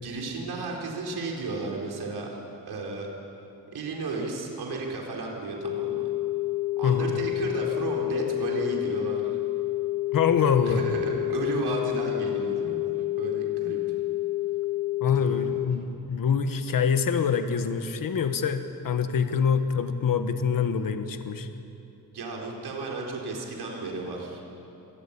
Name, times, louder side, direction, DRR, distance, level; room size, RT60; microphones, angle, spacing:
voice 1, 0.0-3.1 3.7-6.0 6.8-9.4 10.6-13.8 15.1-15.7 22.1-24.4, right 3 dB, 85° right, -1 dB, 4.5 m, -33 dB
sound 1, 5.6-15.7, left 17 dB, 80° left, 1.0 m, -29 dB
voice 2, 10.1-10.8 15.0-21.5, left 6 dB, 60° left, 8 dB, 1.5 m, -25 dB
26.5 x 19.5 x 8.6 m, 2.8 s
wide cardioid pair, 155°, 38 cm